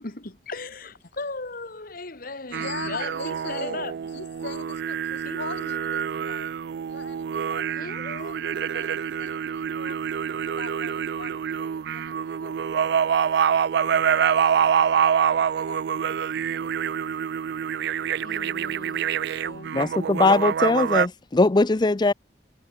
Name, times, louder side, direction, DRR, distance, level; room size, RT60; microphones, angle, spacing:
voice 1, 0.0-3.9 5.2-5.4 7.8-8.4 18.2-19.2 19.4-19.8, left 3 dB, 55° left, 2.2 m, -37 dB
voice 2, 2.5-6.5 6.9-10.0 10.5-17.0, left 3 dB, 85° left, 3.5 m, -42 dB
sound 1, 2.5-21.1, right 8 dB, 65° right, 0.3 m, -26 dB
voice 3, 19.7-22.1, left 3 dB, 25° left, 0.5 m, -20 dB
head